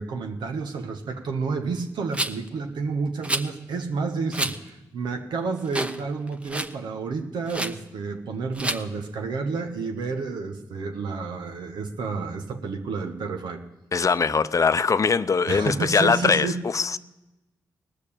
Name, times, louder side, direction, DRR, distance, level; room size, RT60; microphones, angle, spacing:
voice 1, 0.0-13.6 15.5-16.6, right 4 dB, 80° right, 1.2 m, -30 dB
Rattle, 2.1-2.5 3.2-3.5 4.3-4.6 5.0-5.1 5.7-6.0 6.3-6.7 7.5-7.7 8.5-8.8, right 1 dB, 15° right, 0.9 m, -28 dB
voice 2, 13.9-17.0, left 5 dB, 45° left, 0.6 m, -22 dB
18.0 x 6.7 x 8.7 m
supercardioid pair, 50°, 8 cm